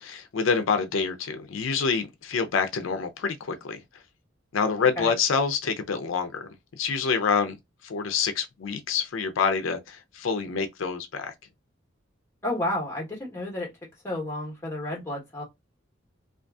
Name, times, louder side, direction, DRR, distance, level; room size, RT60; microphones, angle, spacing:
voice 1, 0.0-3.8 4.5-6.5 6.8-7.6 7.8-11.3, left 5 dB, 90° left, 0.5 m, -27 dB
voice 2, 4.8-5.1 12.4-13.7 14.0-15.4, left 1 dB, 15° left, 1.0 m, -31 dB
2.5 x 2.4 x 2.3 m
head